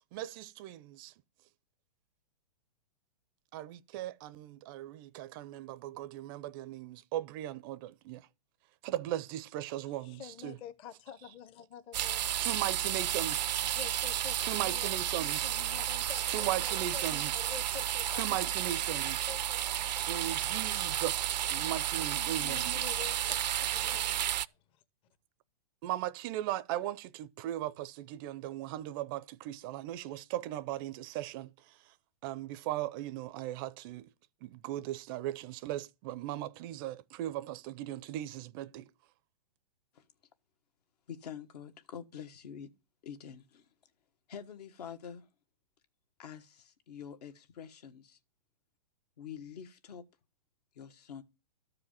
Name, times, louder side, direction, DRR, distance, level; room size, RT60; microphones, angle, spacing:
voice 1, 0.1-1.1 3.5-8.3 8.8-10.5 12.4-13.6 14.4-15.5 16.3-17.3 18.1-19.3 20.1-22.7 25.8-31.5 32.2-34.1 34.4-38.9, right 13 dB, 30° right, 0.5 m, -38 dB
voice 2, 9.8-12.2 13.6-18.4 18.9-24.4, left 9 dB, 25° left, 0.7 m, -49 dB
sound 1, 11.9-24.5, right 11 dB, 80° right, 0.5 m, -32 dB
voice 3, 41.1-42.7 43.0-43.7 44.3-45.3 46.2-48.2 49.2-50.0 50.7-51.2, left 8 dB, 70° left, 1.6 m, -46 dB
13.0 x 4.9 x 7.4 m
hypercardioid pair, 145°, 21 cm